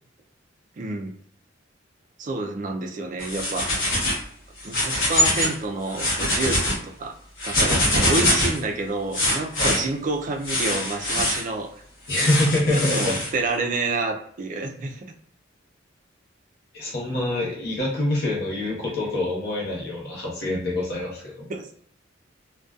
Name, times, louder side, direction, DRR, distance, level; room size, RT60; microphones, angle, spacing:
voice 1, 0.8-1.1 2.2-3.7 4.6-7.1 7.4-11.7 12.7-15.1 21.5-21.7, right 3 dB, 40° right, 3 dB, 0.4 m, -28 dB
sound 1, 3.2-4.2 4.6-5.6 5.9-6.8 7.4-8.6 9.1-9.8 10.4-11.4 12.1-13.3, left 1 dB, 75° left, 1.0 m, -23 dB
voice 2, 12.1-13.2 16.7-21.5, left 1 dB, 55° left, -4 dB, 0.9 m, -26 dB
2.5 x 2.2 x 2.3 m, 0.63 s
head